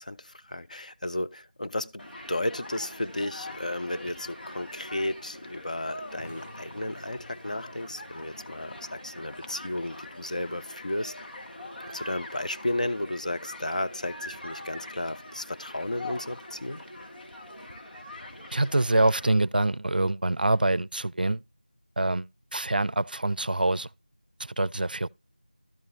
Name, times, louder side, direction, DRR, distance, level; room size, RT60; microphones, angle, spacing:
voice 1, 0.0-11.4 11.8-16.8, left 1 dB, 55° left, 0.6 m, -33 dB
Human group actions, 2.0-19.3, left 1 dB, 85° left, 2.1 m, -43 dB
sound 1, 6.2-11.4, left 1 dB, 15° left, 0.4 m, -53 dB
voice 2, 18.5-21.4 22.0-23.9 24.4-25.1, right 2 dB, 75° right, 0.4 m, -25 dB
12.5 x 5.4 x 4.0 m
figure-of-eight pair, 175°, 5 cm